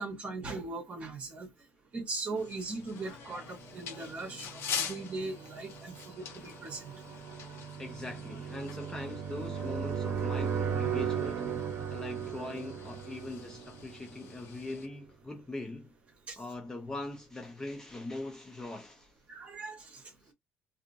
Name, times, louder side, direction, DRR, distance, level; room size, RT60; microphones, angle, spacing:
voice 1, 0.0-1.5 1.9-6.9 16.3-16.4 19.3-20.0, right 3 dB, 25° right, 1.2 m, -39 dB
sound 1, 2.4-14.9, left 7 dB, 50° left, 0.9 m, -45 dB
sound 2, 3.6-14.4, right 7 dB, 45° right, 0.8 m, -37 dB
voice 2, 7.8-11.6 11.9-15.9 16.4-19.1 20.2-20.3, left 2 dB, 10° left, 0.4 m, -41 dB
2.7 x 2.6 x 2.5 m
cardioid pair, 165°, 5 cm